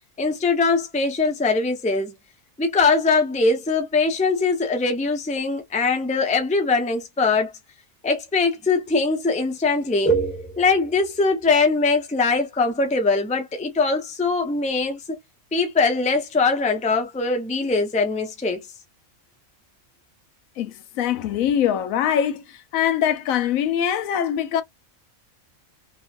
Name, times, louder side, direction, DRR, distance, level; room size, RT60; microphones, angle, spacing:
voice 1, 0.2-2.1 2.6-7.5 8.0-15.2 15.5-18.6, left 3 dB, 10° left, 0.4 m, -22 dB
voice 2, 20.6-22.4 22.7-24.6, left 9 dB, 80° left, 1.0 m, -23 dB
3.0 x 2.5 x 2.3 m
omnidirectional pair, 1.4 m